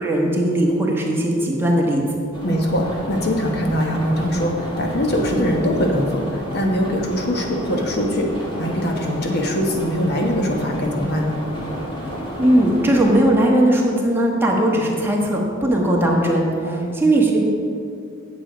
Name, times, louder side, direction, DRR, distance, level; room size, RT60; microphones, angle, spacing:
voice 1, 0.0-2.0 12.4-17.4, right 1 dB, 10° right, -2 dB, 1.2 m, -18 dB
sound 1, 2.3-13.2, equal, 25° left, 1.9 m, -31 dB
voice 2, 2.4-8.3 8.6-11.4 16.6-16.9, equal, 55° left, 1 dB, 1.3 m, -22 dB
9.3 x 7.3 x 5.1 m, 2.3 s
head